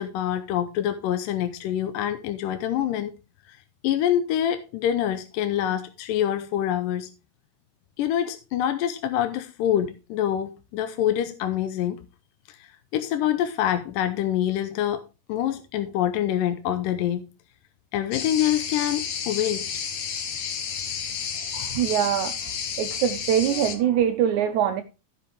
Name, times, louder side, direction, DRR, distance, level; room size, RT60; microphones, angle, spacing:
voice 1, 0.0-3.1 3.8-7.1 8.0-12.0 12.9-15.0 15.3-17.2 17.9-19.7, left 11 dB, 80° left, 2.3 m, -25 dB
sound 1, 18.1-23.8, left 7 dB, 60° left, 2.0 m, -31 dB
voice 2, 21.5-22.4 22.8-24.8, right 9 dB, 75° right, 1.8 m, -23 dB
15.0 x 5.9 x 3.4 m
omnidirectional pair, 4.0 m